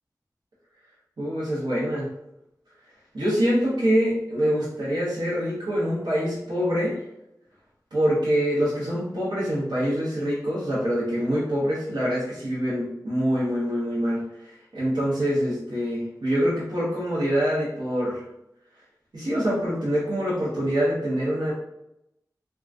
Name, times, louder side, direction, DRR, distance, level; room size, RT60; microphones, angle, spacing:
voice 1, 1.2-2.1 3.1-7.0 7.9-18.2 19.1-21.5, equal, 85° right, -8 dB, 0.9 m, -25 dB
3.5 x 2.2 x 2.5 m, 0.84 s
wide cardioid pair, 70°, 7 cm